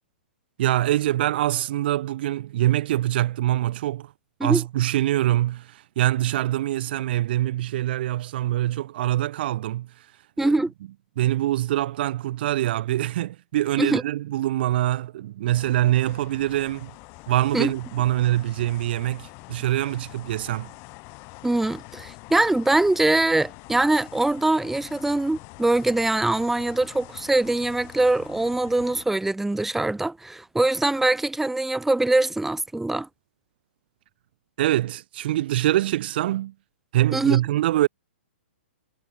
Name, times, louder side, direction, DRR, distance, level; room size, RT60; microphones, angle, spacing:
voice 1, 0.6-4.1 4.4-9.9 10.4-10.6 11.2-16.9 17.3-20.7 34.6-36.5 36.9-37.9, right 14 dB, 55° right, 0.7 m, -24 dB
voice 2, 10.4-10.7 13.8-14.0 17.5-17.7 21.4-33.1 37.1-37.4, right 2 dB, 5° right, 0.9 m, -23 dB
sound 1, 15.5-29.1, left 30 dB, 35° left, 1.8 m, -45 dB
hypercardioid pair, 130°, 7 cm